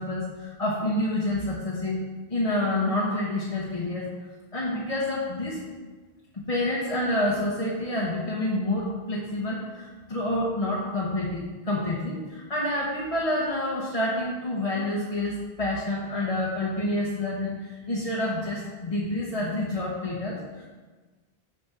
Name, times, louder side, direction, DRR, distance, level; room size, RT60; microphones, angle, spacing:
voice 1, 0.0-2.0 2.3-5.6 6.3-20.7, left 1 dB, 35° left, -5 dB, 1.0 m, -28 dB
7.0 x 4.3 x 5.5 m, 1.3 s
omnidirectional pair, 1.0 m